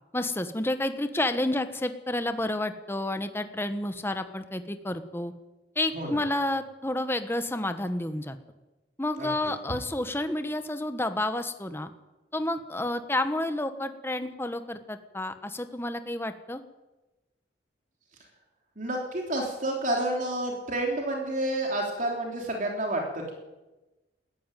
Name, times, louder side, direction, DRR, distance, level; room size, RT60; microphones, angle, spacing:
voice 1, 0.1-5.3 5.7-8.4 9.0-11.9 12.3-16.6, left 1 dB, 15° left, 9 dB, 1.1 m, -30 dB
voice 2, 18.8-23.3, right 1 dB, 45° right, 1 dB, 3.4 m, -29 dB
20.0 x 14.5 x 9.1 m, 1.1 s
head